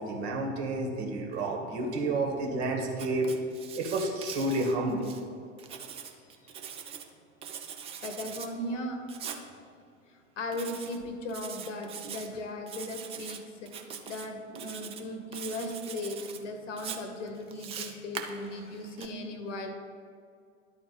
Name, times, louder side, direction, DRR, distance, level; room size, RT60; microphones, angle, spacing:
voice 1, 0.0-3.3 3.8-5.1, right 2 dB, 55° right, 1 dB, 1.5 m, -30 dB
Writing, 2.9-5.2 5.6-7.1 7.4-8.5 9.1-9.4 10.5-11.0 11.3-12.3 12.7-13.4 13.7-14.3 14.5-15.0 15.3-16.4 16.8-19.1, right 7 dB, 15° right, 0.4 m, -42 dB
voice 2, 8.0-9.0 10.1-19.7, left 1 dB, 65° left, 5 dB, 1.1 m, -37 dB
11.5 x 4.3 x 4.0 m, 2.3 s
figure-of-eight pair, 90°, 39 cm